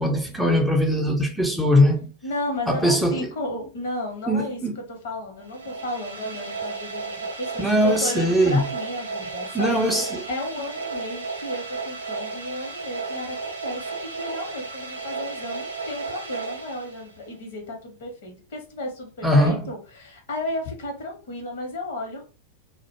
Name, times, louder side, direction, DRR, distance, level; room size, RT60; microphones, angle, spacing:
voice 1, 0.0-2.1 2.7-3.3 4.3-4.8 7.6-8.6 9.5-10.2 19.2-19.7, equal, ahead, 0.4 m, -21 dB
voice 2, 2.2-9.8 10.3-22.2, left 1 dB, 55° left, 0.8 m, -33 dB
sound 1, 5.4-17.4, right 4 dB, 75° right, 0.5 m, -34 dB
2.1 x 2.0 x 2.9 m
figure-of-eight pair, 90°, 0 cm